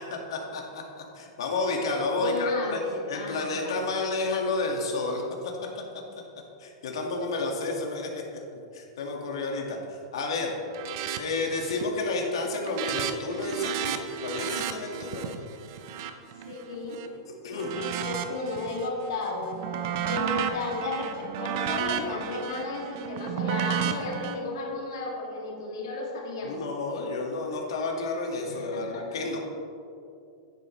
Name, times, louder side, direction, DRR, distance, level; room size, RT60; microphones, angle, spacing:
voice 1, 0.0-2.8 3.1-5.2 6.6-8.4 8.7-10.5 11.2-15.3 17.4-17.7 26.4-29.4, left 3 dB, 80° left, 1 dB, 1.7 m, -31 dB
voice 2, 2.2-3.8 15.1-15.2 16.5-17.1 17.5-19.5 20.1-26.6 28.5-29.2, left 3 dB, 60° left, -1 dB, 2.2 m, -33 dB
sound 1, 10.7-11.2 11.5-11.9 12.2-17.1 17.6-18.9 19.3-24.3, right 8 dB, 40° right, 0.6 m, -32 dB
10.5 x 9.7 x 3.1 m, 2.5 s
supercardioid pair, 180°, 3 cm